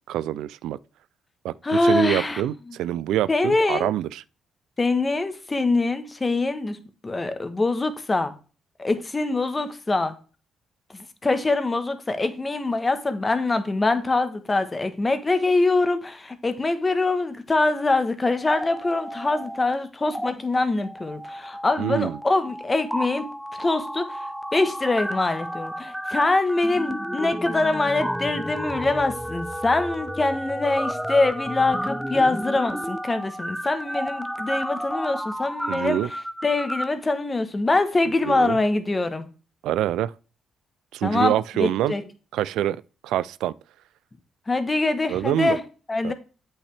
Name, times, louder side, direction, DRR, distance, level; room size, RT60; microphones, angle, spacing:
voice 1, 0.1-0.8 1.4-4.2 21.8-22.2 35.7-36.1 38.2-38.6 39.6-40.1 40.9-41.9 42.3-42.8 43.0-43.5 45.1-45.6 46.0-46.1, right 12 dB, 85° right, 0.3 m, -25 dB
voice 2, 1.6-2.4 3.3-3.9 4.8-6.8 7.0-8.3 8.8-10.1 11.2-23.3 23.6-24.2 24.5-36.0 36.4-39.2 41.0-41.3 41.6-42.0 44.5-45.6 45.9-46.1, left 2 dB, 25° left, 1.2 m, -24 dB
sound 1, 18.4-19.7 20.0-20.3 20.8-36.8, equal, ahead, 0.6 m, -32 dB
8.4 x 5.7 x 3.3 m
cardioid pair, 90°, 0 cm